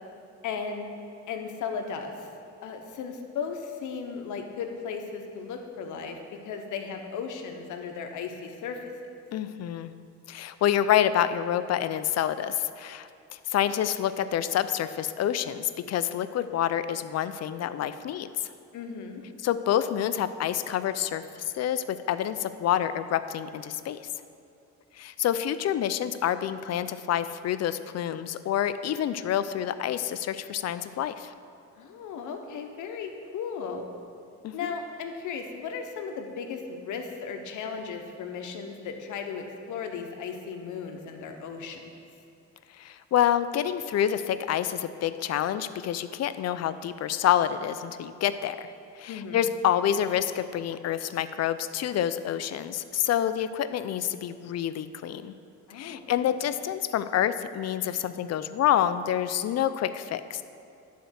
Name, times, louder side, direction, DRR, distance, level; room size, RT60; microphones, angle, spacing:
voice 1, 0.4-0.9 1.3-2.3 2.6-8.8 18.7-19.2 31.7-33.8 34.5-41.9 49.1-49.5 55.7-56.3, left 6 dB, 80° left, 4 dB, 1.0 m, -36 dB
voice 2, 9.3-9.9 10.3-18.5 19.4-24.0 25.0-31.3 34.4-34.7 42.8-55.3 55.7-60.4, left 10 dB, 60° left, 12 dB, 0.5 m, -28 dB
10.5 x 4.6 x 6.3 m, 2.5 s
cardioid pair, 90°, 30 cm